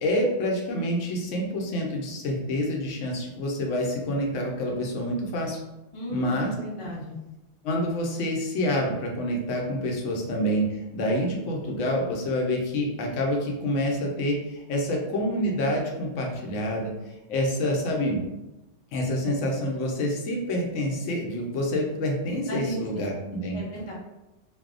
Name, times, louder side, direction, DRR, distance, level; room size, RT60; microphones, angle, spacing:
voice 1, 0.0-5.6 6.1-6.5 7.6-16.9 17.3-18.2 18.9-23.6, left 1 dB, 85° left, 0 dB, 0.9 m, -27 dB
voice 2, 5.9-7.2 22.5-23.1 23.5-23.9, equal, 35° left, -5 dB, 0.6 m, -35 dB
2.6 x 2.0 x 2.4 m, 0.97 s
omnidirectional pair, 1.2 m